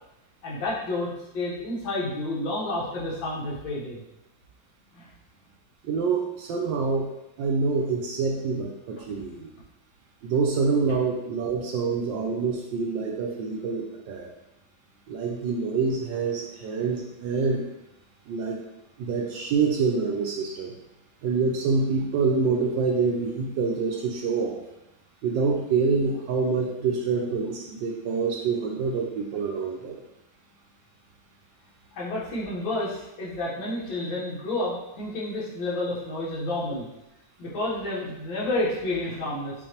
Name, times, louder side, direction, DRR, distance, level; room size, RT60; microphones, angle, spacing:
voice 1, 0.4-4.0 4.9-5.1 31.9-36.9 37.4-39.5, left 2 dB, 70° left, -5 dB, 1.8 m, -30 dB
voice 2, 5.8-7.1 7.4-9.5 10.2-14.3 15.1-17.6 18.3-18.6 19.0-20.7 21.2-24.6 25.2-30.0, right 4 dB, 75° right, 0 dB, 1.1 m, -26 dB
6.4 x 2.6 x 2.8 m, 0.90 s
omnidirectional pair, 2.3 m